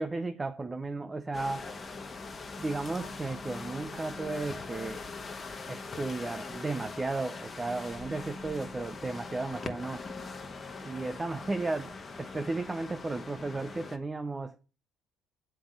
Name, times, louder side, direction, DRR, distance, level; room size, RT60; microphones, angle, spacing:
voice 1, 0.0-1.6 2.6-5.0 5.7-10.0 10.8-14.6, right 3 dB, 20° right, 0.7 m, -34 dB
sound 1, 1.3-14.0, left 3 dB, 30° left, 1.3 m, -42 dB
7.0 x 5.7 x 6.5 m
supercardioid pair, 75°, 0 cm